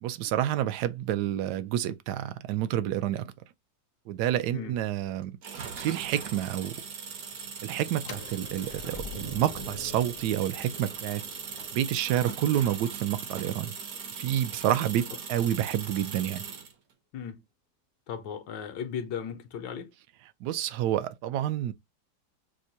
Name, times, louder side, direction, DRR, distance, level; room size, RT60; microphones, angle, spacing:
voice 1, 0.0-3.3 4.1-5.3 5.8-6.7 7.6-11.2 11.7-13.7 14.2-15.0 15.3-16.4 20.4-21.7, right 11 dB, 75° right, 1.0 m, -29 dB
sound 1, 5.4-16.7, right 6 dB, 55° right, 1.2 m, -40 dB
sound 2, 8.0-13.9, left 5 dB, 60° left, 0.7 m, -46 dB
voice 2, 17.1-17.4 18.1-19.9, left 7 dB, 75° left, 1.3 m, -36 dB
6.2 x 2.1 x 2.7 m
omnidirectional pair, 2.1 m